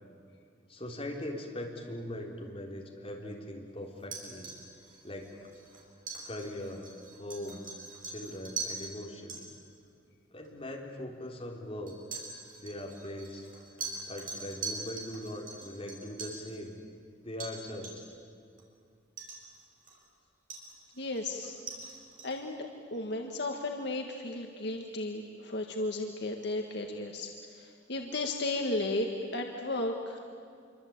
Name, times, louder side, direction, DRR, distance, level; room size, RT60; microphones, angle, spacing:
voice 1, 0.7-4.5 5.0-5.3 6.2-6.9 7.2-7.6 8.0-9.4 10.3-12.0 12.6-13.5 14.1-16.7 17.2-18.0, left 1 dB, 30° left, 0 dB, 3.8 m, -40 dB
sound 1, 4.0-8.9 9.3-9.4 10.4-10.5 11.9-16.5 17.4-17.6 17.8-18.2 18.6-18.7 19.2-20.1 20.5-22.4, right 4 dB, 50° right, 6.1 m, -42 dB
voice 2, 21.0-21.6 21.9-22.0 22.2-30.2, left 2 dB, 65° left, 2 dB, 1.9 m, -34 dB
27.0 x 24.5 x 8.9 m, 2.3 s
head